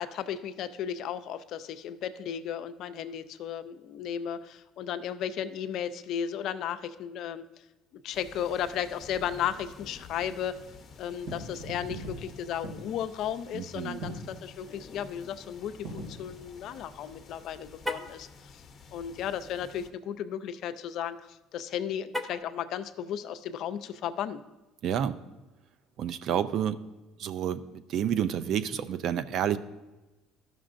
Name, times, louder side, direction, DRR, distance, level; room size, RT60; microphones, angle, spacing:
voice 1, 0.0-7.6 7.9-10.6 11.0-18.6 18.9-24.4, left 9 dB, 60° left, 12 dB, 0.4 m, -35 dB
sound 1, 8.1-19.9, left 5 dB, 40° left, 0.8 m, -51 dB
sound 2, 11.2-17.7, right 1 dB, 80° right, 2.5 m, -43 dB
voice 2, 13.5-14.0 24.8-25.2 26.0-26.8 27.2-29.6, right 9 dB, 60° right, 13 dB, 0.4 m, -29 dB
Car, 17.8-18.2 22.1-22.6, left 1 dB, 5° right, 0.5 m, -35 dB
13.0 x 6.1 x 2.5 m, 1.1 s
supercardioid pair, 95°, 0 cm